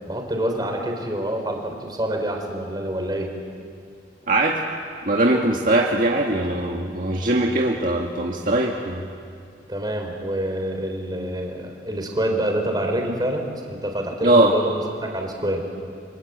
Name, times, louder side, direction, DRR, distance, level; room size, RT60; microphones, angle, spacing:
voice 1, 0.1-3.3 9.7-15.7, right 1 dB, 25° right, 3 dB, 4.0 m, -27 dB
voice 2, 4.3-4.6 5.1-9.1 14.2-14.5, right 1 dB, 50° right, -1 dB, 2.0 m, -20 dB
29.0 x 25.0 x 8.2 m, 2.3 s
head